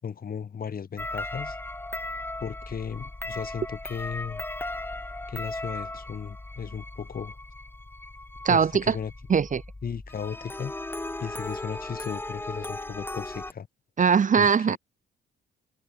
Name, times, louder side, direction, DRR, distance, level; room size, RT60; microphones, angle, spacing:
voice 1, 0.0-1.6 2.4-4.4 5.3-7.4 8.5-9.1 9.8-13.7 14.4-14.8, left 7 dB, 50° left, 5.8 m, -36 dB
sound 1, 1.0-13.5, left 2 dB, 10° left, 1.3 m, -37 dB
voice 2, 8.4-8.9 9.3-9.6 14.0-14.8, right 6 dB, 40° right, 1.3 m, -21 dB
cardioid pair, 90°, 20 cm